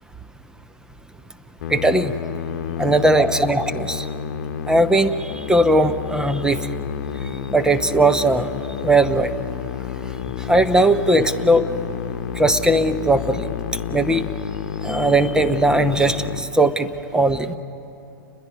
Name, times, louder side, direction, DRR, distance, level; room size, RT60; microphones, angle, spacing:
Musical instrument, 1.6-16.4, left 8 dB, 55° left, 1.1 m, -30 dB
voice 1, 1.7-2.1 2.8-4.1 4.7-5.1 5.5-6.6 7.5-8.5 8.8-9.3 10.5-11.7 12.4-13.5 13.9-14.2 14.8-17.5, right 2 dB, 5° right, 9 dB, 0.8 m, -18 dB
29.5 x 21.5 x 6.0 m, 2.7 s
hypercardioid pair, 110°, 12 cm